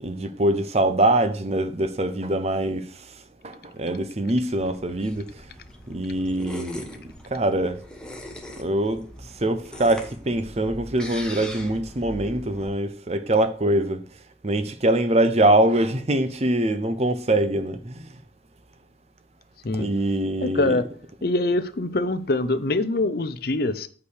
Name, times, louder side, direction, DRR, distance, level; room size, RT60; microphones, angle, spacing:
voice 1, 0.0-3.1 3.4-5.4 5.9-6.9 7.3-7.8 8.6-14.0 14.4-18.2 19.7-20.8, right 1 dB, 35° right, 0.7 m, -23 dB
sound 1, 4.5-12.7, left 1 dB, 5° left, 1.2 m, -40 dB
voice 2, 20.4-20.9 21.2-23.9, left 2 dB, 55° left, 0.7 m, -24 dB
8.4 x 4.9 x 6.4 m
head